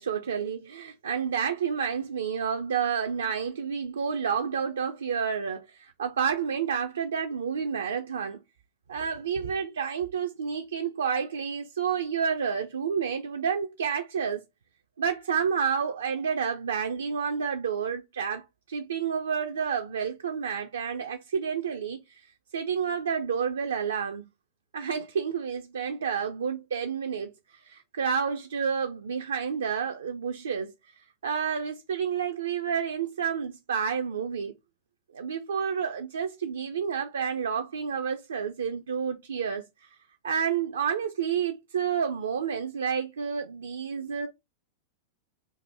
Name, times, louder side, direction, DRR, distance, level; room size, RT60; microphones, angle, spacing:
voice 1, 0.0-8.4 8.9-14.4 15.0-24.3 24.7-27.3 27.6-30.7 31.2-34.5 35.1-39.9 40.2-44.3, right 7 dB, 70° right, 0.4 m, -30 dB
4.2 x 2.6 x 3.2 m
figure-of-eight pair, 90°, 0 cm